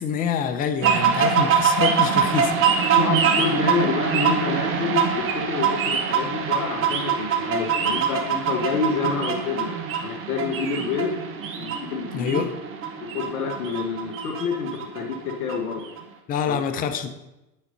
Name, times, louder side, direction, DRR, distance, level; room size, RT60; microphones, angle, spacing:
voice 1, 0.0-3.0 12.1-12.5 16.3-17.1, left 7 dB, 20° left, 8 dB, 0.6 m, -26 dB
sound 1, 0.8-16.0, right 6 dB, 25° right, 1.2 m, -24 dB
voice 2, 3.0-9.7 10.0-11.2 11.5-12.5 13.0-15.9 16.5-16.6, left 5 dB, 65° left, 3 dB, 1.8 m, -28 dB
9.2 x 7.5 x 4.1 m, 0.95 s
hypercardioid pair, 120°, 48 cm